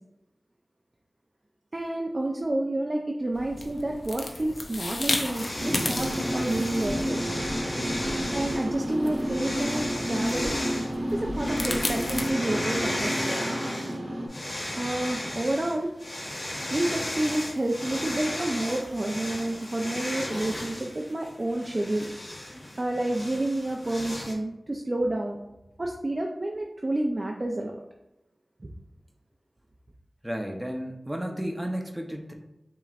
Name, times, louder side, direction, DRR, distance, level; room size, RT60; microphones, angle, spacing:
voice 1, 1.7-7.2 8.3-10.5 11.1-13.6 14.7-15.9 16.7-22.1 22.8-25.4 25.8-27.7 28.6-28.7, right 1 dB, 45° right, 0 dB, 0.5 m, -29 dB
sound 1, 3.3-12.3, left 2 dB, 65° left, 0.6 m, -35 dB
sound 2, 5.3-8.7 9.2-10.9 11.3-14.0 14.3-24.3, left 1 dB, 50° left, 1.3 m, -35 dB
sound 3, 5.6-14.3, equal, 75° right, 1.1 m, -31 dB
voice 2, 30.2-32.3, equal, 15° right, 3 dB, 0.8 m, -33 dB
7.1 x 3.0 x 2.5 m, 0.93 s
cardioid pair, 45°, 0 cm